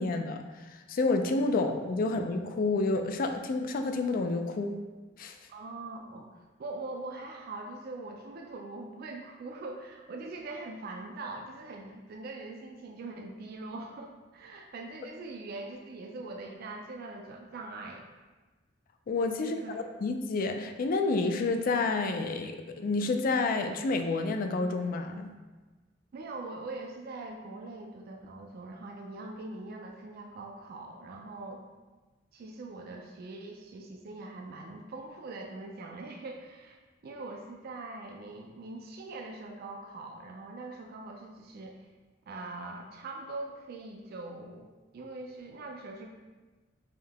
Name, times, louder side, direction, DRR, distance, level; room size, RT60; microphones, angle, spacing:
voice 1, 0.0-4.8 5.2-5.4 19.1-25.3, left 3 dB, 45° left, 6 dB, 0.3 m, -29 dB
voice 2, 5.5-18.0 19.4-19.8 26.1-31.6 32.3-41.9 42.3-46.1, right 2 dB, 50° right, 2 dB, 0.3 m, -42 dB
3.5 x 2.7 x 3.4 m, 1.2 s
head